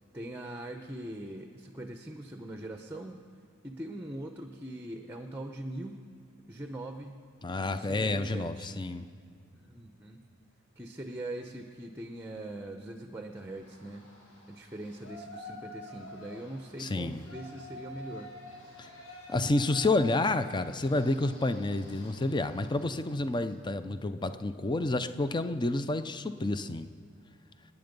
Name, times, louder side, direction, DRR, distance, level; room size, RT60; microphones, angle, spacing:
voice 1, 0.1-3.2 3.6-6.0 6.5-7.2 7.6-8.8 9.7-10.2 10.8-14.1 14.5-18.3 23.7-24.4, right 1 dB, 10° right, 5 dB, 0.8 m, -42 dB
voice 2, 7.4-9.1 16.8-17.2 18.8-18.9 19.3-26.9, left 2 dB, 20° left, 11 dB, 0.5 m, -29 dB
Yell, 13.4-23.6, left 1 dB, 75° left, 5.1 m, -49 dB
27.5 x 9.8 x 5.3 m, 2.3 s
head